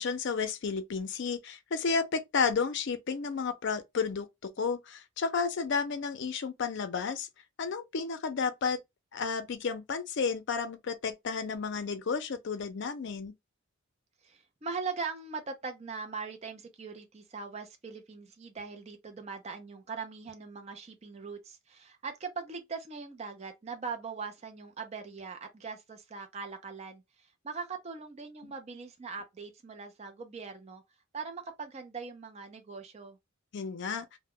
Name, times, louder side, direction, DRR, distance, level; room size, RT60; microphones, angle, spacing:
voice 1, 0.0-7.3 7.6-8.8 9.1-13.3 28.4-28.5 33.5-34.1, left 5 dB, 55° left, 0.4 m, -32 dB
voice 2, 14.2-30.8 31.1-33.2, right 5 dB, 30° right, 0.4 m, -41 dB
2.1 x 2.1 x 3.6 m
head